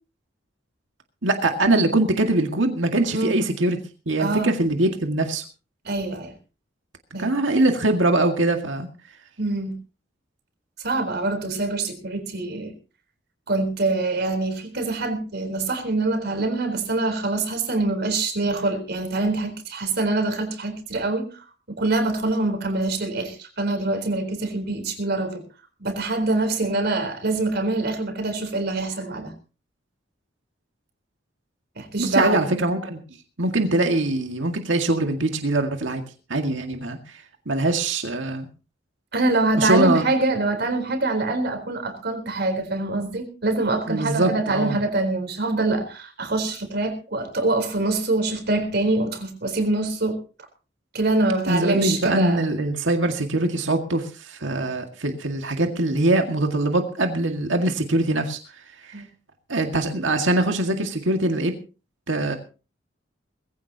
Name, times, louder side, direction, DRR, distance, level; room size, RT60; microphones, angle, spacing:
voice 1, 1.2-3.8 4.1-5.4 7.1-8.9 32.0-33.0 33.4-36.0 36.3-38.5 39.6-40.0 43.9-44.8 51.5-58.4 58.8-59.0 59.5-61.5 62.1-62.4, right 2 dB, 75° right, 4 dB, 2.0 m, -22 dB
voice 2, 4.2-4.5 5.8-6.3 7.1-7.3 9.4-9.7 10.8-12.7 13.5-21.3 21.7-25.4 25.8-29.3 31.8-32.6 39.1-50.2 50.9-52.4 58.9-59.1, right 2 dB, 60° right, 5 dB, 4.0 m, -24 dB
20.5 x 16.0 x 2.9 m, 0.34 s
head